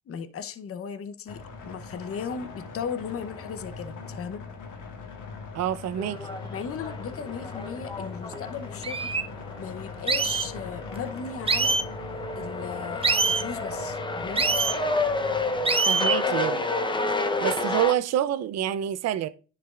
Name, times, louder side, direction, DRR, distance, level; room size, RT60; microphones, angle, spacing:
voice 1, 0.1-4.4 6.5-9.2 9.6-11.8 12.4-14.5, left 7 dB, 50° left, 0.8 m, -36 dB
sound 1, 1.3-15.7, left 4 dB, 85° left, 1.6 m, -41 dB
voice 2, 5.5-6.3 15.9-16.6 17.4-19.3, right 11 dB, 60° right, 0.5 m, -27 dB
sound 2, 6.0-17.9, left 2 dB, 15° left, 0.7 m, -31 dB
sound 3, 8.3-8.4 8.8-9.2 10.1-10.5 11.5-11.9 13.0-13.4 14.4-14.8 15.7-16.2, right 4 dB, 20° right, 0.7 m, -24 dB
10.0 x 4.8 x 2.4 m
cardioid pair, 90°, 30 cm